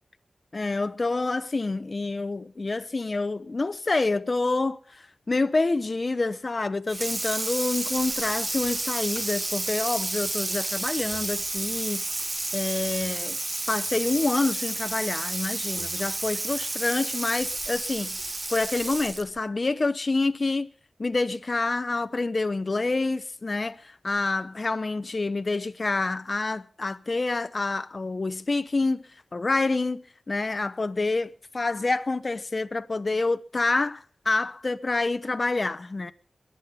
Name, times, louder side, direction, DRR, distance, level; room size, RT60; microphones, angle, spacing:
voice 1, 0.5-12.0 12.5-13.4 13.7-18.2 18.5-20.7 21.0-29.0 29.3-36.1, left 3 dB, 40° left, 0.8 m, -27 dB
Water tap faucet / Sink (filling or washing), 6.9-19.4, right 2 dB, 35° right, 1.2 m, -31 dB
22.0 x 8.5 x 5.6 m
wide cardioid pair, 70°, 0 cm